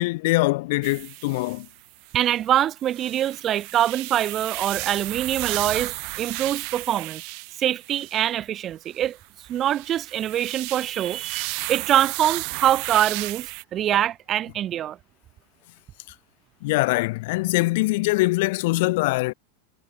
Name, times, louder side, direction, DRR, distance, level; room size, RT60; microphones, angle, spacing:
voice 1, 0.0-1.7 16.6-19.3, left 22 dB, 45° left, 0.9 m, -23 dB
sound 1, 0.8-2.3 2.8-8.3 9.2-13.6, right 39 dB, 35° right, 1.7 m, -33 dB
voice 2, 2.1-7.2 7.6-9.2 9.5-15.0, right 11 dB, 20° right, 2.3 m, -24 dB
supercardioid pair, 175°, 0 cm